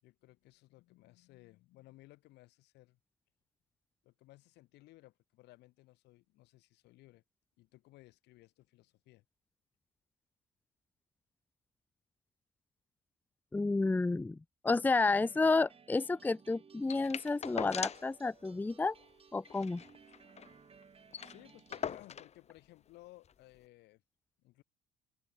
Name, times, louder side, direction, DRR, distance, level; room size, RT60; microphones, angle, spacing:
voice 1, 0.0-3.0 4.0-7.2 7.6-9.2 21.2-24.0 24.4-24.6, left 19 dB, 85° left, 6.2 m, -59 dB
voice 2, 13.5-14.4 14.6-19.0 19.3-19.8, left 3 dB, 10° left, 0.5 m, -30 dB
sound 1, 14.9-21.9, right 6 dB, 35° right, 7.7 m, -60 dB
sound 2, 16.9-18.2 18.5-18.6 18.9-19.1 19.5-20.5 20.8-20.9 21.1-22.4 23.3-23.4, left 8 dB, 40° left, 1.5 m, -41 dB
open air
cardioid pair, 110°, 17 cm